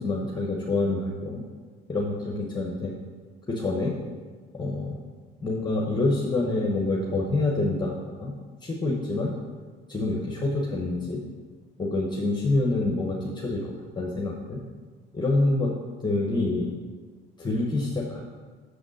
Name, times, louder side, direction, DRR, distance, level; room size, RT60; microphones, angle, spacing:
voice 1, 0.0-1.4 1.9-2.9 3.5-3.9 4.5-5.0 5.4-8.3 8.6-9.3 9.9-11.2 11.8-14.6 15.1-15.7 16.0-16.7 17.4-18.2, left 2 dB, 20° left, -1 dB, 1.0 m, -27 dB
6.5 x 5.0 x 6.3 m, 1.5 s
cardioid pair, 105°, 20 cm